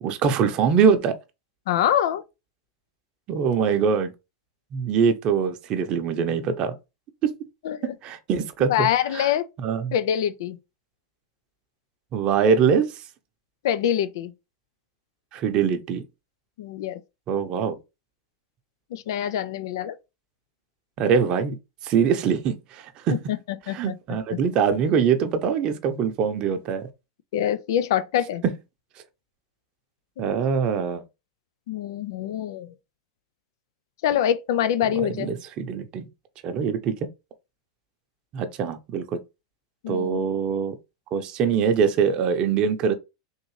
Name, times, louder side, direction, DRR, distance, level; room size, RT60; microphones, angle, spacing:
voice 1, 0.0-1.2 3.3-4.1 4.7-6.7 7.2-7.3 7.8-8.9 9.1-9.3 9.6-9.9 12.1-13.0 15.3-16.0 17.3-17.8 21.0-21.6 21.8-23.2 23.7-26.9 28.4-28.5 30.2-31.0 34.8-36.1 36.4-37.0 38.3-39.2 39.9-40.8 41.1-42.9, right 6 dB, 40° right, 0.7 m, -23 dB
voice 2, 1.7-2.2 7.6-7.9 8.7-9.5 9.9-10.6 13.6-14.3 16.6-17.0 18.9-20.0 23.3-23.4 23.7-23.9 24.3-24.4 27.3-28.4 31.7-32.7 34.0-35.3 39.8-40.2, left 10 dB, 65° left, 0.4 m, -25 dB
3.6 x 2.6 x 3.1 m
hypercardioid pair, 100°, 2 cm